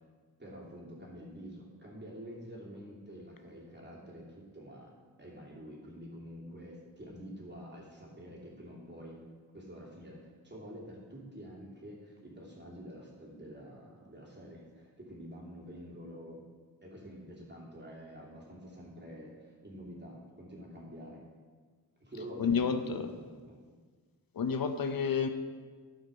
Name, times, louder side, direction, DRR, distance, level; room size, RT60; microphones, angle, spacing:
voice 1, 0.4-4.9 5.2-9.2 9.5-16.4 16.8-21.2 22.0-23.6, equal, 30° right, -4 dB, 2.8 m, -48 dB
voice 2, 22.4-23.1 24.3-25.3, left 6 dB, 65° left, 8 dB, 0.7 m, -30 dB
12.0 x 5.7 x 5.1 m, 1.5 s
wide cardioid pair, 75°, 38 cm